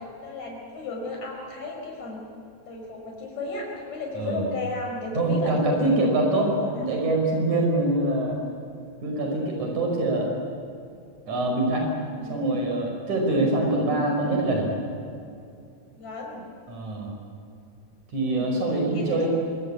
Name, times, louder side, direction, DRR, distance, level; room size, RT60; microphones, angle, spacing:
voice 1, 0.0-2.2 2.7-6.0 6.6-6.9 12.2-12.7 13.3-13.5 16.0-16.4 18.2-18.5 18.9-19.3, left 3 dB, 65° left, 0 dB, 6.8 m, -34 dB
voice 2, 4.1-4.5 5.1-8.4 9.0-10.3 11.3-11.9 12.2-14.7 16.7-17.1 18.1-19.3, right 2 dB, 75° right, 1 dB, 6.8 m, -24 dB
25.5 x 24.5 x 8.8 m, 2.5 s
omnidirectional pair, 3.4 m